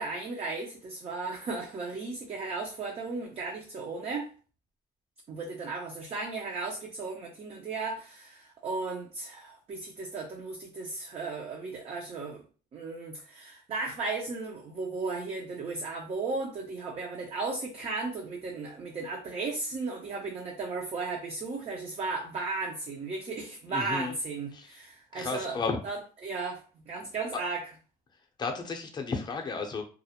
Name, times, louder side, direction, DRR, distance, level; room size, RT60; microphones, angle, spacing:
voice 1, 0.0-4.3 5.3-12.4 12.7-25.6 25.8-26.6 26.9-27.7, right 3 dB, 40° right, -1 dB, 0.5 m, -35 dB
voice 2, 23.7-24.2 24.5-24.7 25.1-25.8 27.3-27.4 28.4-29.8, left 4 dB, 25° left, 3 dB, 0.5 m, -33 dB
2.3 x 2.0 x 2.8 m, 0.37 s
cardioid pair, 110°, 17 cm